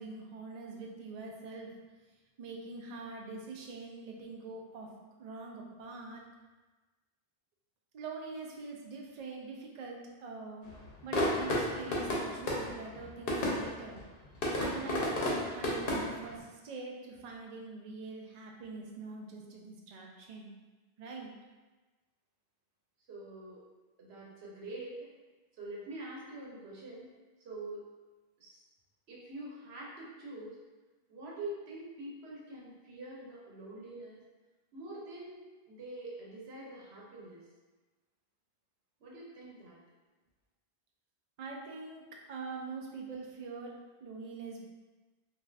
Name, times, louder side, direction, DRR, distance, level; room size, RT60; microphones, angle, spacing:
voice 1, 0.0-1.7 2.4-4.9 5.2-6.2 7.9-10.7 11.0-14.0 14.6-20.5 21.0-21.3 41.4-43.8 44.0-44.6, right 4 dB, 55° right, -1 dB, 0.5 m, -44 dB
sound 1, 10.6-16.4, left 1 dB, 65° left, 0.9 m, -33 dB
voice 2, 23.1-23.6 24.0-25.1 25.6-27.1 27.4-27.8 28.4-28.6 29.1-30.6 31.1-34.2 34.7-37.4 39.0-39.8, right 2 dB, 90° right, -4 dB, 1.0 m, -45 dB
2.5 x 2.3 x 3.2 m, 1.2 s
omnidirectional pair, 1.0 m